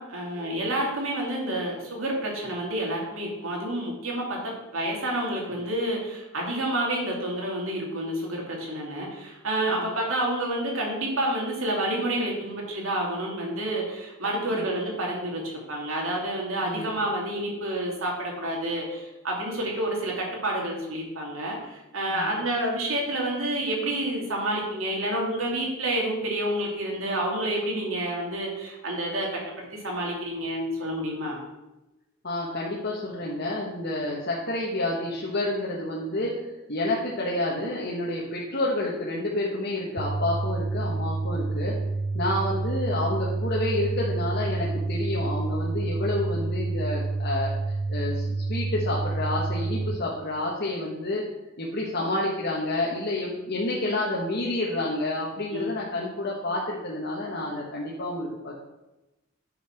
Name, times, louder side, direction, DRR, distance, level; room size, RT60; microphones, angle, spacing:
voice 1, 0.0-31.4 55.5-55.7, right 1 dB, 80° right, -1 dB, 2.8 m, -29 dB
voice 2, 32.2-36.3 36.7-41.8 42.1-47.5 47.9-51.2 51.6-58.5, left 1 dB, 55° left, -4 dB, 1.5 m, -29 dB
sound 1, 40.0-50.0, right 3 dB, 25° right, 0.5 m, -29 dB
8.8 x 5.8 x 6.0 m, 1.0 s
head